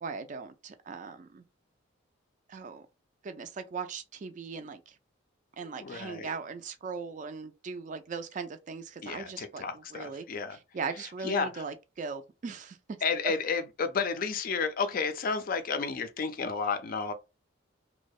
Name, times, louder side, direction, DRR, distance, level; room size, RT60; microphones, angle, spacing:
voice 1, 0.0-1.4 2.5-2.8 3.2-4.9 5.6-9.6 9.9-10.2 10.7-12.8, right 5 dB, 40° right, 0.3 m, -39 dB
voice 2, 5.6-6.3 9.0-10.6 11.0-11.6 13.0-17.1, left 5 dB, 45° left, 0.4 m, -32 dB
2.6 x 2.0 x 2.3 m
head